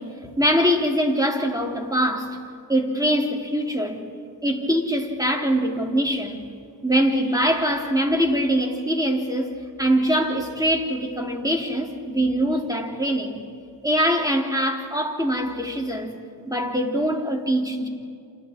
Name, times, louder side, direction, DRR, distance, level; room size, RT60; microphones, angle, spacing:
voice 1, 0.0-2.4 2.7-4.1 4.4-6.5 6.8-13.5 13.8-16.2 16.5-17.9, equal, 10° right, 1 dB, 3.3 m, -23 dB
29.0 x 28.5 x 4.6 m, 2.3 s
cardioid pair, 80°, 47 cm